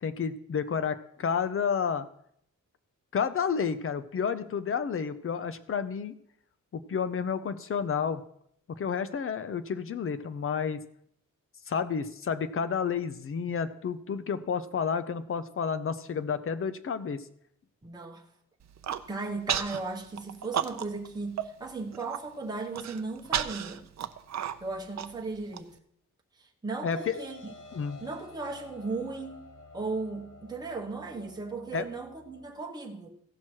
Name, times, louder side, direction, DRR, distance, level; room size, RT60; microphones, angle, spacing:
voice 1, 0.0-2.1 3.1-6.1 6.7-8.2 8.8-10.8 11.7-17.2 26.8-27.2 27.7-28.0 31.7-31.9, left 6 dB, 45° left, 12 dB, 0.6 m, -30 dB
voice 2, 17.8-18.2 19.1-23.9 24.6-25.7 26.4-27.5 28.0-29.4 29.7-33.1, right 3 dB, 15° right, -1 dB, 1.2 m, -36 dB
Human voice, 18.6-19.0 19.5-19.8 20.2-21.1 21.4-21.5 21.9-22.2 22.7-25.6, right 9 dB, 60° right, 0.6 m, -32 dB
sound 1, 26.9-32.5, left 3 dB, 70° left, 1.6 m, -50 dB
16.0 x 6.1 x 4.5 m, 0.69 s
wide cardioid pair, 165°, 31 cm